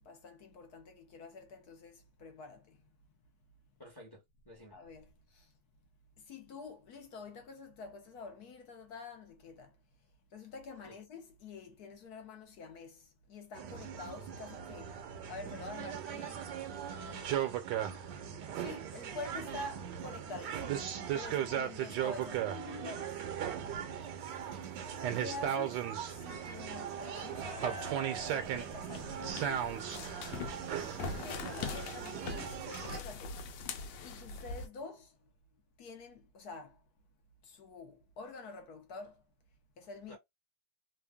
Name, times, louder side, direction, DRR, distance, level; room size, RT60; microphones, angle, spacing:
voice 1, 0.0-2.8 4.7-5.5 6.2-9.8 10.3-15.0 15.3-16.5 16.8-17.7 18.5-23.3 25.1-27.9 28.2-29.9 31.0-35.3 35.8-36.8 37.4-39.2 39.8-40.2, left 3 dB, 65° left, 1.1 m, -48 dB
voice 2, 3.8-4.8 10.8-11.0 14.8-15.1 24.3-24.7 40.1-40.2, equal, 15° left, 0.8 m, -54 dB
sound 1, 13.5-33.0, right 9 dB, 75° right, 1.3 m, -38 dB
sound 2, 24.0-31.6, right 3 dB, 45° right, 0.8 m, -51 dB
sound 3, 28.2-34.7, left 5 dB, 80° left, 1.3 m, -43 dB
3.4 x 2.2 x 2.2 m
omnidirectional pair, 2.0 m